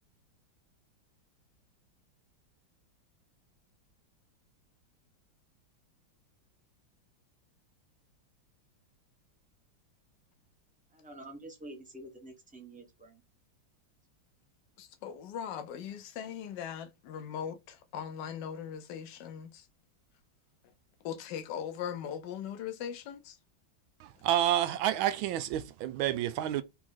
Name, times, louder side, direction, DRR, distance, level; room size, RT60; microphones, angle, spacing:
voice 1, 10.9-13.2, right 1 dB, 5° right, 0.7 m, -48 dB
voice 2, 14.8-19.5 21.0-23.3, left 8 dB, 70° left, 1.2 m, -39 dB
voice 3, 24.0-26.6, right 12 dB, 85° right, 1.4 m, -29 dB
4.1 x 3.1 x 3.7 m
omnidirectional pair, 2.2 m